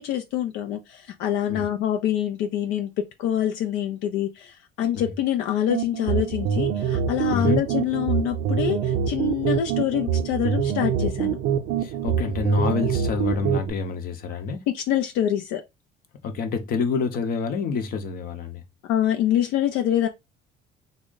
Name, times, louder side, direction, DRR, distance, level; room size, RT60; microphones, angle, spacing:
voice 1, 0.0-11.4 14.7-15.6 18.9-20.1, left 11 dB, 80° left, 0.5 m, -25 dB
sound 1, 5.7-13.7, right 8 dB, 60° right, 0.5 m, -25 dB
voice 2, 11.8-14.6 16.2-18.6, left 4 dB, 50° left, 0.8 m, -27 dB
3.6 x 2.1 x 3.8 m
cardioid pair, 155°, 19 cm